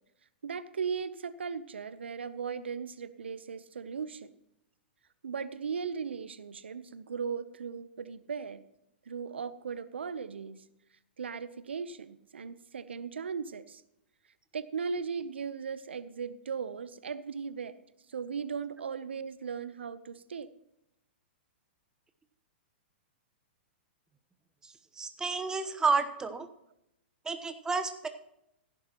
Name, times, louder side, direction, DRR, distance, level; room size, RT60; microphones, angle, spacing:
voice 1, 0.4-4.3 5.2-8.6 9.1-10.6 11.2-13.8 14.5-17.8 18.1-20.5, right 6 dB, 85° right, 15 dB, 0.7 m, -37 dB
voice 2, 24.6-26.5 27.2-28.1, right 4 dB, 10° right, 8 dB, 0.9 m, -31 dB
16.0 x 11.0 x 3.0 m, 0.82 s
hypercardioid pair, 125°, 6 cm